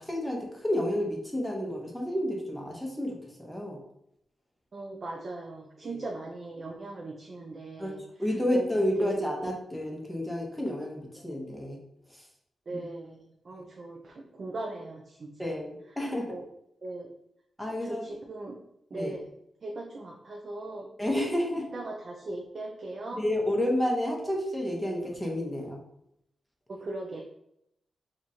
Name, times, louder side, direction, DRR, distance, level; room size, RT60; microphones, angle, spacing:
voice 1, 0.0-3.8 5.8-6.0 7.8-11.8 12.7-12.8 13.5-13.6 15.4-16.3 17.6-18.0 18.9-19.1 21.0-21.7 23.1-25.8, left 1 dB, 5° left, -1 dB, 0.9 m, -30 dB
voice 2, 4.7-9.1 12.7-15.5 16.3-16.4 16.8-17.1 17.8-18.6 18.9-19.3 19.6-20.9 21.7-23.2 26.7-27.2, right 2 dB, 50° right, 0 dB, 0.4 m, -39 dB
2.9 x 2.5 x 4.1 m, 0.77 s
wide cardioid pair, 105°, 0 cm